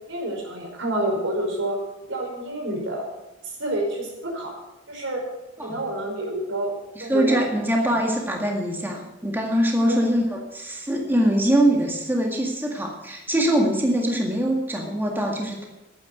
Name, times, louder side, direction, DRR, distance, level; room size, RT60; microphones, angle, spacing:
voice 1, 0.1-1.8 2.1-3.1 3.4-4.5 4.9-5.2 5.6-7.4 9.9-10.0, right 1 dB, 80° right, 0 dB, 5.0 m, -28 dB
voice 2, 7.0-15.6, right 1 dB, 10° right, 0 dB, 1.9 m, -23 dB
11.5 x 9.6 x 7.9 m, 0.99 s
head